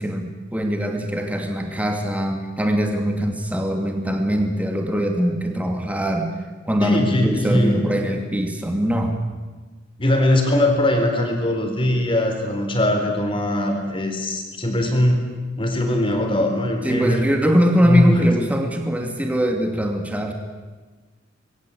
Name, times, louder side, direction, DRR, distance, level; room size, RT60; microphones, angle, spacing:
voice 1, 0.0-6.3 6.6-9.2 16.8-20.3, equal, 5° right, 3 dB, 2.5 m, -22 dB
voice 2, 6.8-7.8 10.0-15.2 15.6-17.2 17.8-18.3, left 1 dB, 25° left, 4 dB, 4.2 m, -21 dB
26.5 x 21.5 x 8.6 m, 1.3 s
head